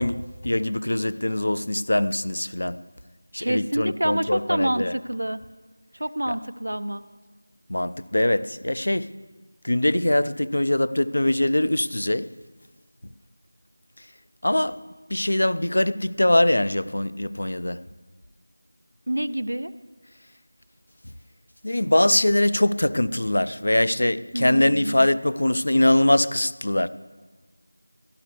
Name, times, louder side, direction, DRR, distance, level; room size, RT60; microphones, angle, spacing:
voice 1, 0.0-2.8 3.3-4.9 6.3-6.4 7.7-9.1 9.6-12.3 14.4-14.8 15.1-17.8 21.6-26.9, left 1 dB, 70° left, 0.5 m, -22 dB
voice 2, 3.4-5.4 6.0-7.0 19.1-19.7 24.3-25.0, right 1 dB, 85° right, 0.5 m, -27 dB
13.5 x 11.5 x 3.3 m
figure-of-eight pair, 175°, 0 cm